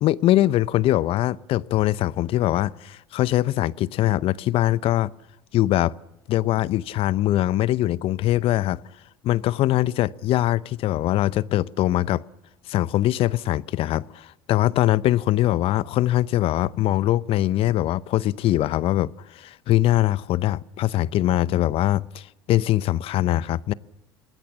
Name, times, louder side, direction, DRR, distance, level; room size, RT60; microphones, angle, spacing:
voice 1, 0.0-5.1 5.5-5.9 6.3-8.8 9.2-12.2 12.7-23.7, left 14 dB, 55° left, 0.7 m, -22 dB
26.5 x 20.5 x 7.2 m
hypercardioid pair, 70°, 11 cm